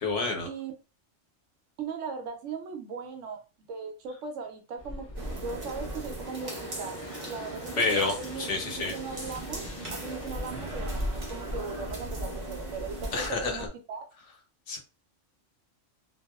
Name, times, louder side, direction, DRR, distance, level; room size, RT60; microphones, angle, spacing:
voice 1, 0.0-0.5 7.8-8.9 13.1-13.7 14.7-14.8, left 3 dB, 70° left, 3 dB, 1.0 m, -29 dB
voice 2, 1.8-3.4 3.7-8.5 8.9-9.6 9.9-14.1, right 5 dB, 80° right, 4 dB, 0.9 m, -38 dB
sound 1, 4.8-13.7, equal, 45° left, 0.8 m, -39 dB
sound 2, 5.1-13.3, right 2 dB, 40° right, 0.7 m, -40 dB
2.7 x 2.0 x 2.2 m, 0.31 s
omnidirectional pair, 1.3 m